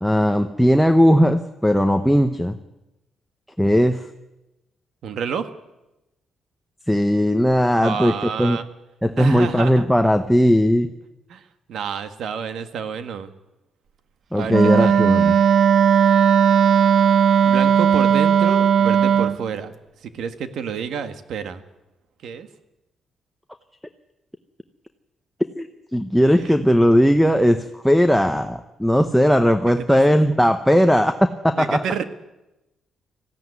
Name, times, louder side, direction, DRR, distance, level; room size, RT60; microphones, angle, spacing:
voice 1, 0.0-2.6 3.6-4.0 6.9-8.6 9.0-10.9 14.3-15.4 25.6-31.8, equal, ahead, 6 dB, 0.9 m, -18 dB
voice 2, 5.0-5.5 7.8-8.6 9.2-9.8 11.3-11.4 11.7-13.3 14.3-15.0 17.4-19.7 20.0-21.6 22.2-22.5 26.4-26.5 29.9-30.0 31.5-32.0, right 7 dB, 70° right, 10 dB, 1.7 m, -29 dB
Wind instrument woodwind instrument, 14.5-19.4, right 8 dB, 55° right, 1.1 m, -16 dB
19.5 x 15.5 x 9.7 m, 0.96 s
cardioid pair, 130°, 0 cm